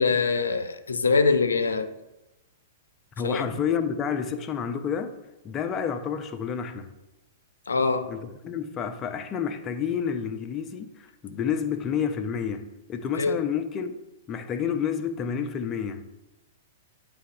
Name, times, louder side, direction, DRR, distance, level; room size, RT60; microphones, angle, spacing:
voice 1, 0.0-1.9 3.2-3.6 7.7-8.1 13.2-13.4, left 4 dB, 80° left, 0.7 m, -23 dB
voice 2, 3.2-5.1 5.4-6.9 8.1-13.9 14.3-16.1, left 7 dB, 25° left, 0.8 m, -29 dB
9.8 x 3.5 x 4.8 m
figure-of-eight pair, 110°, 0 cm